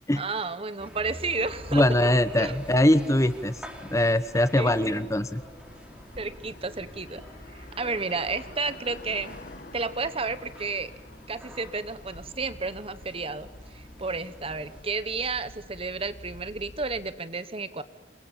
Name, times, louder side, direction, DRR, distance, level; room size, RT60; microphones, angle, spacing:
voice 1, 0.2-1.8 2.4-2.6 4.6-5.0 6.2-7.2 7.5-9.4 9.7-10.9 11.3-17.8, right 4 dB, 30° right, 13 dB, 1.1 m, -32 dB
sound 1, 0.8-14.8, equal, 5° right, 3.5 m, -47 dB
sound 2, 1.4-17.1, left 1 dB, 55° left, 1.9 m, -48 dB
voice 2, 1.7-3.6 3.8-5.4, left 1 dB, 15° left, 12 dB, 1.0 m, -22 dB
28.0 x 23.0 x 9.0 m, 1.1 s
head